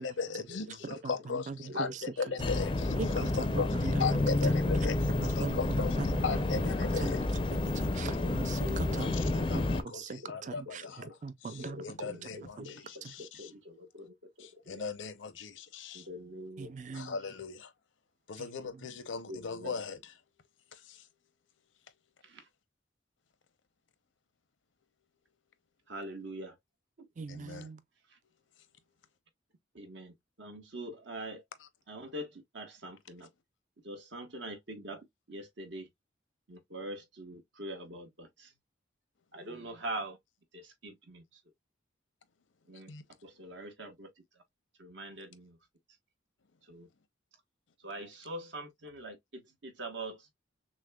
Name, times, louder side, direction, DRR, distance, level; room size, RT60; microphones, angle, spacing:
voice 1, 0.0-5.0 5.3-5.9 6.2-7.2 8.9-9.1 9.3-11.1 11.8-13.2 14.7-16.0 16.9-17.7 18.3-20.0 20.9-21.0 27.3-27.7 42.9-43.0, left 5 dB, 85° left, 0.6 m, -37 dB
voice 2, 0.8-2.0 2.4-2.6 3.0-4.5 5.1-11.8 12.1-12.3 12.6-12.7 13.0-13.1 16.6-17.2 18.4-18.9 27.2-27.8, right 4 dB, 40° right, 0.4 m, -41 dB
voice 3, 1.7-3.7 4.5-4.7 5.2-5.7 6.0-6.3 8.1-8.3 8.6-9.6 10.0-10.1 10.4-10.5 10.8-11.1 11.6-14.9 15.9-16.9 17.3-17.4 19.3-19.9 22.2-22.5 25.9-26.6 27.0-27.1 28.1-28.2 29.7-31.4 31.9-33.3 33.8-35.9 36.5-38.5 39.3-40.2 40.5-41.4 42.7-42.9 43.2-44.4 44.8-45.6 46.6-46.9 47.8-50.3, right 1 dB, 75° right, 1.2 m, -44 dB
sound 1, 2.4-9.8, left 2 dB, 25° left, 0.4 m, -30 dB
6.2 x 2.1 x 2.2 m
head